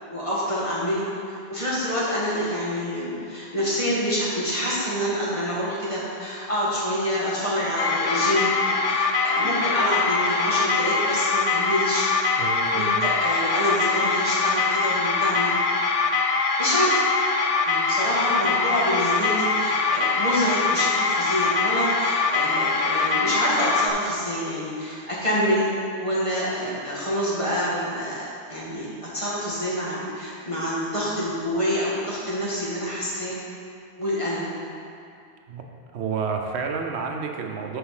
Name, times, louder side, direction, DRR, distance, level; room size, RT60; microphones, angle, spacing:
voice 1, 0.0-12.1 12.7-15.5 16.6-17.1 17.7-25.7 26.0-28.9 29.1-33.3 34.0-34.5, equal, 30° left, -8 dB, 1.9 m, -27 dB
sound 1, 7.8-23.9, left 4 dB, 50° left, 0.4 m, -23 dB
voice 2, 12.4-13.0 35.5-35.6 35.9-37.8, right 5 dB, 80° right, 3 dB, 1.0 m, -30 dB
6.7 x 4.9 x 6.3 m, 2.5 s
omnidirectional pair, 1.1 m